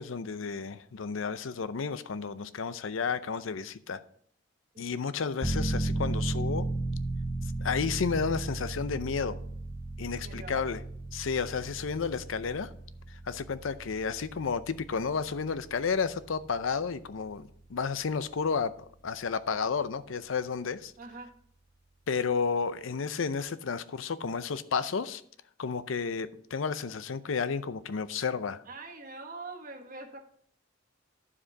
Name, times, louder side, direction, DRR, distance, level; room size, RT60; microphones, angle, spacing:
voice 1, 0.0-4.0 4.8-6.7 7.6-9.4 10.0-10.8 11.1-12.7 13.3-18.7 19.0-20.9 22.1-25.2 25.6-28.6, left 5 dB, 85° left, 14 dB, 0.6 m, -32 dB
sound 1, 5.4-17.9 18.3-18.4, right 2 dB, 20° left, 2.1 m, -35 dB
voice 2, 10.1-10.6 21.0-21.3 28.6-30.2, right 3 dB, 45° right, 2 dB, 1.4 m, -44 dB
11.5 x 4.9 x 4.6 m, 0.62 s
head